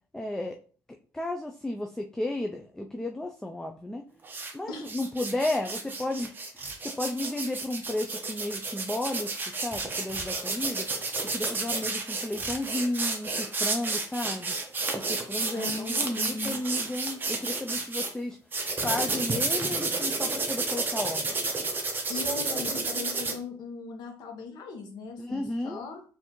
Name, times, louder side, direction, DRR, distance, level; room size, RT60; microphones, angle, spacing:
voice 1, 0.1-0.6 1.1-4.1 4.5-10.9 11.3-14.5 14.9-18.4 18.8-21.5 25.2-25.8, left 1 dB, 5° left, 4 dB, 0.3 m, -33 dB
sound 1, 4.2-4.5 4.9-18.1 18.5-23.3, right 3 dB, 30° right, 0.8 m, -31 dB
voice 2, 15.5-16.6 22.1-26.0, left 3 dB, 75° left, 3 dB, 1.0 m, -38 dB
4.2 x 2.6 x 2.9 m, 0.41 s
cardioid pair, 105°, 7 cm